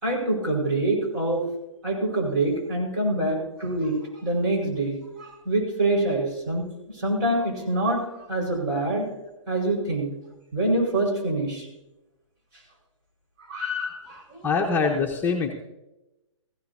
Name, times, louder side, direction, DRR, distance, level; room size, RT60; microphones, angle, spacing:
voice 1, 0.0-1.4 1.8-9.1 9.5-10.1 10.5-11.7 13.5-14.5, right 2 dB, 40° right, -1 dB, 5.0 m, -26 dB
voice 2, 14.4-15.5, left 5 dB, 10° left, -1 dB, 1.0 m, -23 dB
17.0 x 15.5 x 2.8 m, 0.97 s
figure-of-eight pair, 125°, 17 cm